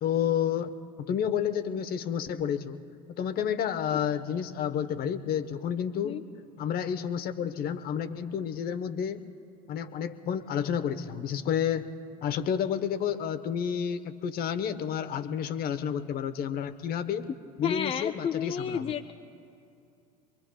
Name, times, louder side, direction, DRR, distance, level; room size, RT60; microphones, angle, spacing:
voice 1, 0.0-2.8 3.2-6.2 6.6-9.2 9.7-11.9 12.2-17.3 17.6-18.9, left 8 dB, 45° left, 10 dB, 1.0 m, -30 dB
voice 2, 17.6-19.1, left 8 dB, 30° left, 6 dB, 0.6 m, -31 dB
25.5 x 23.5 x 2.3 m, 2.6 s
hypercardioid pair, 75°, 21 cm